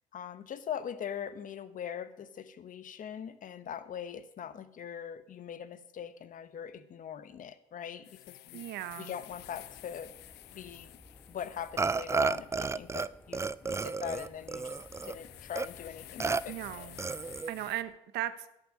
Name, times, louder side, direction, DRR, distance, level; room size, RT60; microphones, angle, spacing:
voice 1, 0.1-8.6 9.0-10.1 10.5-11.0 11.3-16.9, left 8 dB, 50° left, 13 dB, 1.1 m, -42 dB
sound 1, 8.0-17.8, left 16 dB, 75° left, 0.6 m, -52 dB
voice 2, 8.5-9.1 16.5-17.2 17.5-18.5, right 13 dB, 75° right, 13 dB, 1.0 m, -37 dB
sound 2, 9.3-17.4, left 1 dB, 10° left, 1.4 m, -57 dB
Burping eructation, 11.8-13.1 13.3-15.2 15.5-15.7 16.2-16.4 17.0-17.5, right 4 dB, 15° right, 0.4 m, -32 dB
11.0 x 6.8 x 8.5 m, 0.84 s
supercardioid pair, 75°, 17 cm